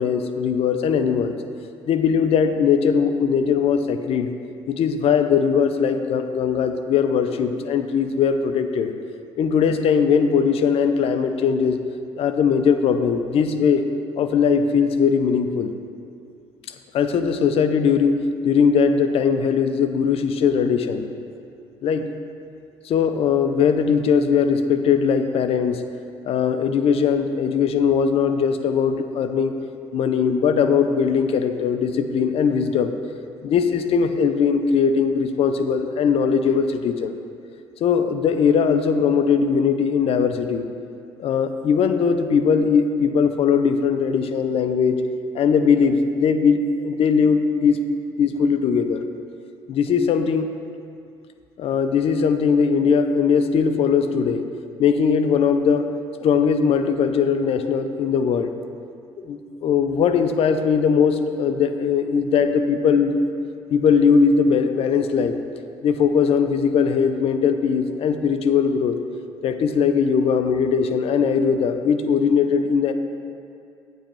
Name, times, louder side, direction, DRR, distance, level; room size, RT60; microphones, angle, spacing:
voice 1, 0.0-1.4 1.9-4.3 4.7-8.9 9.4-11.8 12.2-13.8 14.2-15.7 16.9-21.1 21.8-22.1 22.8-25.8 26.2-29.5 29.9-32.9 33.4-37.1 37.8-40.7 41.2-45.0 45.3-47.8 48.2-49.0 49.7-50.5 51.6-54.4 54.8-55.9 56.2-58.5 59.2-63.2 63.7-65.4 65.8-69.0 69.4-72.9, left 6 dB, 55° left, 8 dB, 0.4 m, -20 dB
8.3 x 3.0 x 4.4 m, 2.4 s
hypercardioid pair, 65°, 12 cm